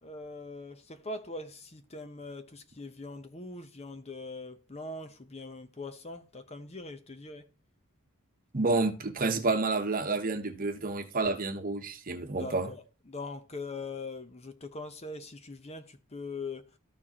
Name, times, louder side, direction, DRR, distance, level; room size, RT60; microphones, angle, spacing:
voice 1, 0.0-7.5 12.4-16.7, left 3 dB, 30° left, 0.8 m, -42 dB
voice 2, 8.5-12.7, right 3 dB, 40° right, 1.0 m, -29 dB
13.5 x 4.6 x 2.9 m
head